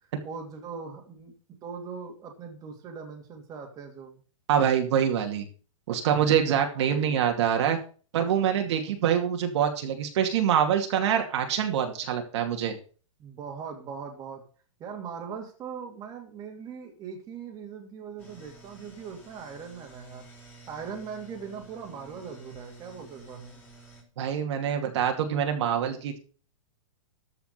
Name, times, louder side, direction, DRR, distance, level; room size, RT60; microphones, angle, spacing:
voice 1, 0.2-1.3 1.6-4.2 6.8-7.3 13.2-14.4 14.8-20.2 20.7-23.7, right 6 dB, 20° right, 2 dB, 2.7 m, -40 dB
voice 2, 4.5-5.4 5.9-7.8 8.1-12.7 24.2-26.2, right 8 dB, 55° right, 4 dB, 2.6 m, -25 dB
sound 1, 18.2-24.0, right 3 dB, 10° left, 4.3 m, -52 dB
14.0 x 5.7 x 6.8 m, 0.39 s
hypercardioid pair, 155°, 17 cm